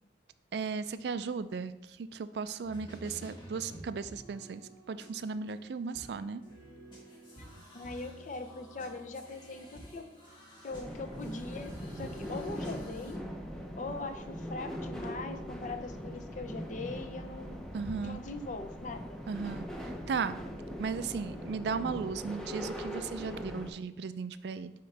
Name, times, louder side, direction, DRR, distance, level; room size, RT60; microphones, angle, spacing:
voice 1, 0.5-4.6 4.9-6.4 12.0-12.1 17.7-18.2 19.3-20.4 20.8-24.7, right 5 dB, 65° right, 13 dB, 0.3 m, -36 dB
sound 1, 2.6-13.2, equal, 30° left, 1.7 m, -51 dB
voice 2, 7.7-10.1 10.6-13.2 13.8-17.7 18.0-19.2, left 3 dB, 45° left, 7 dB, 0.6 m, -41 dB
sound 2, 10.7-23.7, equal, 5° left, 0.6 m, -41 dB
9.4 x 3.8 x 3.3 m, 0.89 s
head